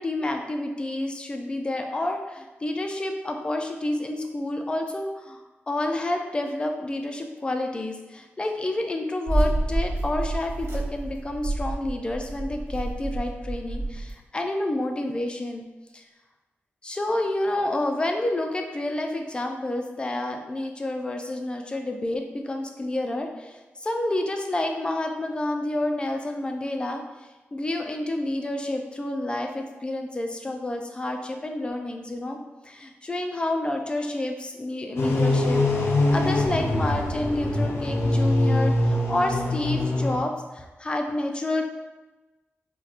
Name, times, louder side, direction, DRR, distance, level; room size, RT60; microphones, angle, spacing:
voice 1, 0.0-15.7 15.9-16.0 16.8-27.0 27.5-32.4 32.6-41.6, left 1 dB, 20° left, 3 dB, 0.3 m, -29 dB
sound 1, 9.3-14.1, right 2 dB, 80° right, 0.8 m, -28 dB
sound 2, 35.0-40.2, left 2 dB, 80° left, 0.5 m, -23 dB
4.1 x 2.2 x 2.4 m, 1.2 s
wide cardioid pair, 150°, 4 cm